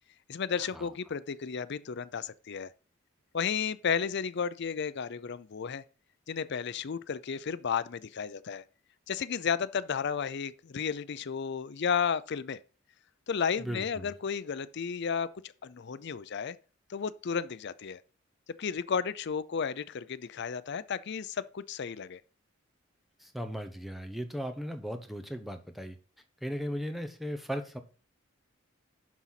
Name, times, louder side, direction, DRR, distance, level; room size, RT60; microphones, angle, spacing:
voice 1, 0.3-2.7 3.3-5.8 6.3-8.6 9.1-12.6 13.3-15.3 15.6-16.6 16.9-18.0 18.6-22.2, left 6 dB, 55° left, 0.5 m, -33 dB
voice 2, 13.6-14.1 23.2-26.0 26.4-27.8, equal, ahead, 0.9 m, -37 dB
11.0 x 4.0 x 5.8 m
head